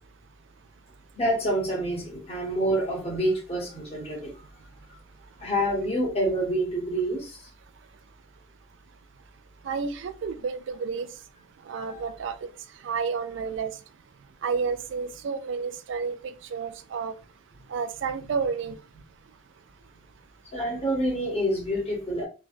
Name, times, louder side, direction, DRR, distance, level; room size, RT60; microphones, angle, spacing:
voice 1, 1.2-4.3 5.4-7.4 11.8-12.0 20.5-22.3, right 1 dB, 30° left, 1.0 m, -27 dB
voice 2, 9.6-11.1 11.7-12.4 12.8-13.7 14.4-17.2 17.7-18.8, right 5 dB, 70° right, 0.3 m, -30 dB
3.1 x 2.2 x 2.4 m
head